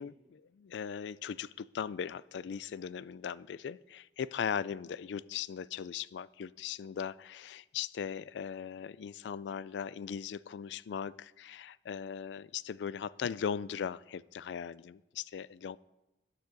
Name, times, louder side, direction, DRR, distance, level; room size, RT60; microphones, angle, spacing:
voice 1, 0.0-15.8, left 7 dB, 75° left, 20 dB, 0.3 m, -39 dB
13.0 x 9.7 x 4.0 m, 0.99 s
head